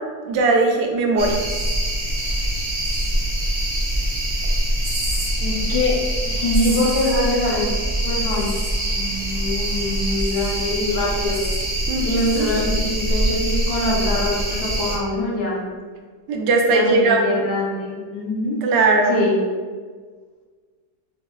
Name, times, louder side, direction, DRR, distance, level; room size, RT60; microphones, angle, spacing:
voice 1, 0.3-1.4 11.9-12.1 12.4-12.5 16.3-17.4 18.6-19.2, right 3 dB, 80° right, 2 dB, 1.2 m, -18 dB
sound 1, 1.2-15.0, right 1 dB, 45° right, 0.3 m, -24 dB
voice 2, 5.4-6.0 6.2-7.8 8.0-8.5 8.9-11.4 12.0-15.6 16.7-18.6 19.1-19.4, left 2 dB, 65° left, -3 dB, 1.2 m, -23 dB
6.0 x 2.1 x 2.3 m, 1.5 s
omnidirectional pair, 1.8 m